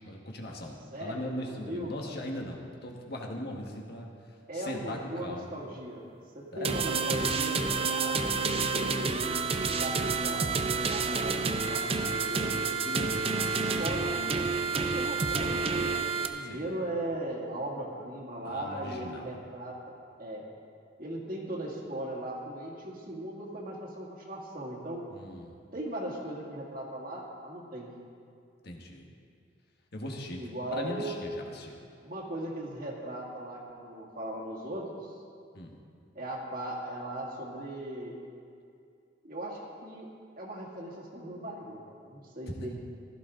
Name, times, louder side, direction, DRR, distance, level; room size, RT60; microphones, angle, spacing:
voice 1, 0.0-4.1 4.5-5.6 6.5-6.8 12.8-13.3 16.4-16.7 18.4-19.5 25.1-25.6 28.6-29.0 29.9-30.4 30.7-31.8 35.5-35.8 42.5-42.7, left 1 dB, 60° left, 0 dB, 1.6 m, -39 dB
voice 2, 0.9-2.1 4.5-6.0 6.3-9.1 9.6-10.6 10.9-12.7 13.6-14.4 14.6-19.8 20.2-20.5 21.0-25.0 25.7-27.9 30.4-31.2 32.0-35.1 36.1-38.1 39.2-40.1 40.4-42.8, right 1 dB, 50° right, -3 dB, 2.3 m, -38 dB
sound 1, 6.6-16.3, right 4 dB, 30° right, 0.6 m, -29 dB
16.0 x 13.0 x 3.8 m, 2.4 s
head